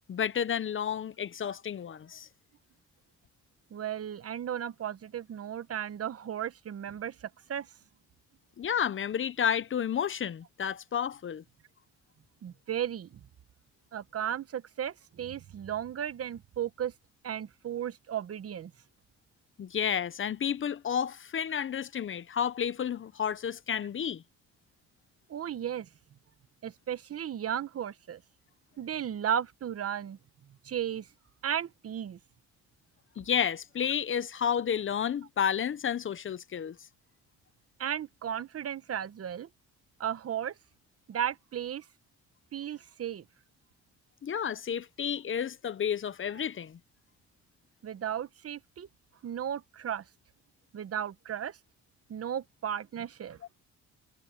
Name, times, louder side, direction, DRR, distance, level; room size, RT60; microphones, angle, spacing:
voice 1, 0.1-2.3 8.6-11.4 19.6-24.2 33.2-36.8 44.2-46.8, left 8 dB, 40° left, 0.8 m, -31 dB
voice 2, 3.7-7.7 12.4-13.2 13.9-16.9 17.2-18.7 25.3-25.9 26.6-28.2 28.8-30.2 30.6-31.1 31.4-32.2 37.8-39.5 40.0-40.5 41.1-41.8 42.5-43.2 47.8-48.9 49.2-50.0 50.7-51.6 52.1-53.4, right 9 dB, 50° right, 1.1 m, -35 dB
cardioid pair, 90°, 30 cm